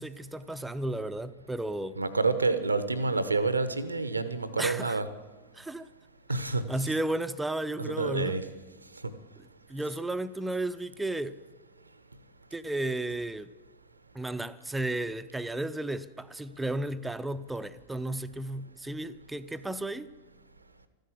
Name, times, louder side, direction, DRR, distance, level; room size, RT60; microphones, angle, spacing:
voice 1, 0.0-2.0 4.6-5.0 5.5-5.9 6.7-8.4 9.7-11.4 12.5-13.5 14.1-20.1, right 1 dB, 5° right, 0.5 m, -33 dB
voice 2, 2.0-5.1 6.3-6.6 7.8-8.4 9.0-9.1, right 3 dB, 80° right, 0.8 m, -28 dB
14.0 x 10.0 x 8.4 m
figure-of-eight pair, 90°, 0 cm